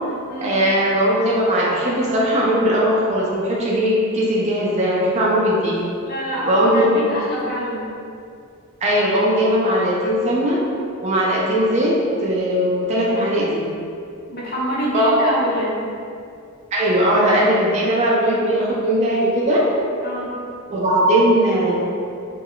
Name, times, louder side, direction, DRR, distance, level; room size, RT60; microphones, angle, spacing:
voice 1, 0.4-5.8 6.5-7.1 8.8-10.6 11.0-11.9 12.2-13.7 14.9-15.3 16.7-19.6 20.7-21.7, equal, 30° right, -5 dB, 0.4 m, -19 dB
voice 2, 6.0-7.9 14.3-15.8 20.0-20.3, right 1 dB, 45° left, -6 dB, 0.6 m, -26 dB
2.2 x 2.0 x 3.7 m, 2.4 s
head